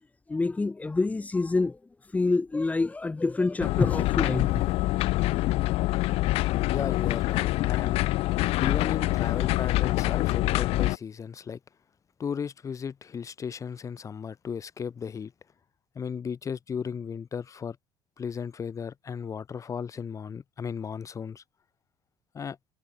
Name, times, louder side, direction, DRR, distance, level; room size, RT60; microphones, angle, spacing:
voice 1, 0.3-4.6, left 3 dB, 15° left, 3.1 m, -27 dB
sound 1, 3.6-11.0, left 18 dB, 65° left, 2.4 m, -25 dB
voice 2, 6.7-8.0 8.6-11.6 12.2-15.3 16.0-17.8 18.2-21.4 22.3-22.6, left 6 dB, 30° left, 7.5 m, -35 dB
cardioid pair, 130°, 11 cm